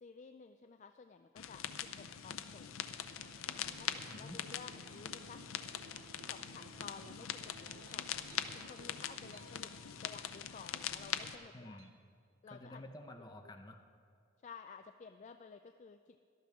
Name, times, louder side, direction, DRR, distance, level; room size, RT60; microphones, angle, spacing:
voice 1, 0.0-2.7 3.5-5.4 6.2-8.2 8.5-9.7 10.0-11.8 12.4-12.8 14.4-16.2, left 5 dB, 35° left, 7 dB, 0.3 m, -54 dB
sound 1, 1.4-11.4, left 9 dB, 85° left, 0.6 m, -43 dB
sound 2, 3.2-12.0, right 3 dB, 80° right, 0.6 m, -59 dB
voice 2, 4.1-4.4 11.5-11.9 12.5-13.8, left 1 dB, 20° left, 4 dB, 0.7 m, -50 dB
17.5 x 12.0 x 3.6 m, 2.3 s
head